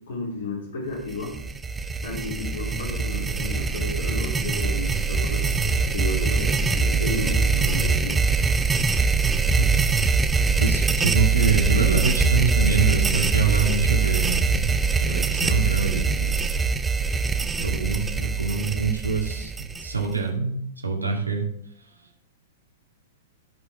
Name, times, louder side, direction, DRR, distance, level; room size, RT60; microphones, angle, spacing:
voice 1, 0.1-1.4 2.0-8.2, left 3 dB, 60° left, -2 dB, 3.4 m, -33 dB
sound 1, 1.1-20.2, right 4 dB, 10° right, 0.6 m, -23 dB
voice 2, 10.6-14.7 15.0-16.3 17.6-19.5 19.8-21.4, right 5 dB, 80° right, 0 dB, 2.2 m, -25 dB
16.5 x 5.5 x 3.6 m, 0.68 s
figure-of-eight pair, 105°, 0 cm